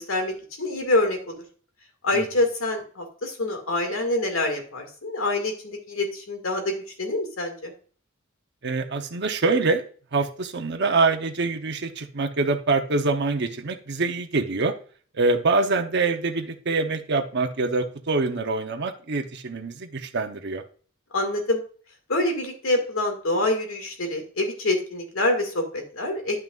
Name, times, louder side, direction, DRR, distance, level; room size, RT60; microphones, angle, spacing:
voice 1, 0.0-1.3 2.0-7.7 21.1-21.6 22.1-26.4, left 2 dB, 90° left, 4 dB, 2.1 m, -26 dB
voice 2, 8.6-9.8 10.1-14.7 15.1-20.6, right 3 dB, 60° right, 5 dB, 0.9 m, -25 dB
10.5 x 5.9 x 2.5 m, 0.42 s
head